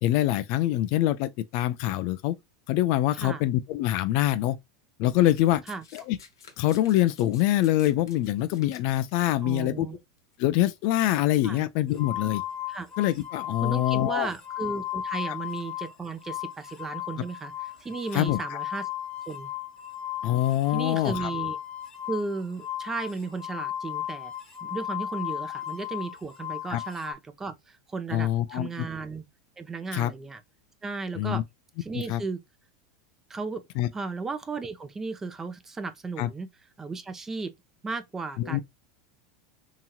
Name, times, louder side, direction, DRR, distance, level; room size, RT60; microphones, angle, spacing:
voice 1, 0.0-2.3 2.7-4.6 5.0-5.6 5.9-6.2 6.6-9.9 10.4-12.4 13.0-14.3 18.1-18.4 20.2-21.3 26.7-26.8 28.1-28.9 29.9-30.1 31.1-31.4 32.1-32.2 33.8-33.9 36.2-36.3 38.4-38.6, left 14 dB, 55° left, 0.4 m, -24 dB
Domestic sounds home sounds, 5.3-9.3 10.2-10.4, left 6 dB, 85° left, 0.9 m, -51 dB
voice 2, 9.4-10.0 11.4-11.7 12.7-12.9 13.6-17.5 17.8-18.9 19.3-19.5 20.7-21.6 22.1-24.3 24.6-29.2 29.6-30.4 30.8-31.4 31.8-32.4 33.3-33.6 33.9-36.5 36.8-37.5 37.8-38.6, right 4 dB, 20° right, 0.6 m, -35 dB
sound 1, 11.9-15.9 16.2-27.1, left 11 dB, 30° left, 1.1 m, -35 dB
2.9 x 2.7 x 2.3 m
hypercardioid pair, 95°, 2 cm